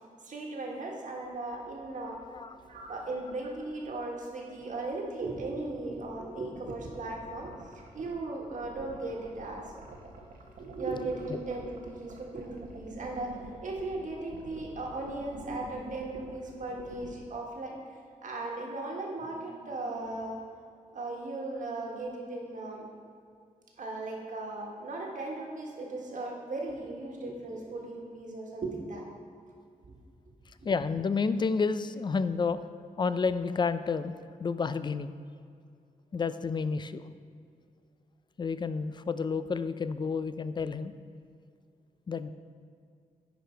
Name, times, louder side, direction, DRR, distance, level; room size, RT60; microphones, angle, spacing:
voice 1, 0.2-2.2 2.7-10.0 10.6-13.4 13.6-17.8 18.2-20.4 20.9-22.9 23.8-29.0, right 2 dB, 60° right, -1 dB, 1.5 m, -37 dB
sound 1, 1.3-17.1, right 3 dB, 85° right, 1.1 m, -48 dB
voice 2, 30.6-32.6 33.0-34.1 34.4-35.1 36.1-37.0 38.4-40.9 42.1-42.3, left 5 dB, 30° left, 13 dB, 0.3 m, -30 dB
9.9 x 5.0 x 4.5 m, 2.3 s
wide cardioid pair, 110°, 14 cm